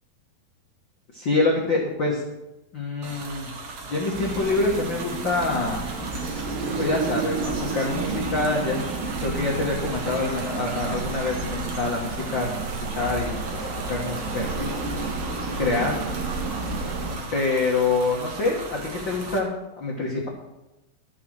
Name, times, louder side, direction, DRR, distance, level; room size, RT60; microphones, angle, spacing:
voice 1, 1.1-2.2 2.7-3.5 3.9-5.8 6.8-8.8 9.2-13.6 13.9-14.7 15.6-15.9 17.3-19.5 19.8-20.3, left 3 dB, 80° left, -3 dB, 1.0 m, -26 dB
sound 1, 3.0-19.4, right 3 dB, 60° right, 1.6 m, -37 dB
sound 2, 4.1-17.2, right 3 dB, 90° right, 3.7 m, -31 dB
13.5 x 5.8 x 6.4 m, 0.98 s
omnidirectional pair, 4.7 m